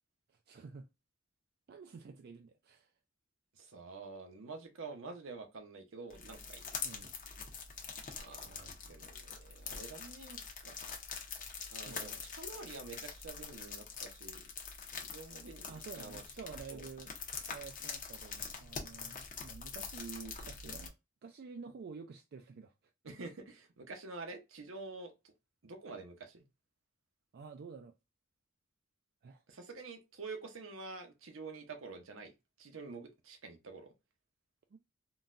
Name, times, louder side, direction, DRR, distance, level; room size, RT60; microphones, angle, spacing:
voice 1, 0.5-0.8 1.7-2.9 6.8-7.1 8.5-8.7 11.9-12.2 15.7-17.1 17.4-20.9 21.2-22.7 27.3-27.9 29.2-29.4 34.7-34.8, right 5 dB, 50° right, 0.4 m, -49 dB
voice 2, 3.6-6.6 8.2-10.7 11.7-14.5 14.9-16.2 16.7-16.8 23.0-25.1 25.6-26.4 29.5-32.3 32.6-33.9, right 3 dB, 70° right, 0.7 m, -48 dB
sound 1, 6.1-20.9, left 5 dB, 40° left, 0.8 m, -45 dB
3.8 x 2.2 x 2.5 m
head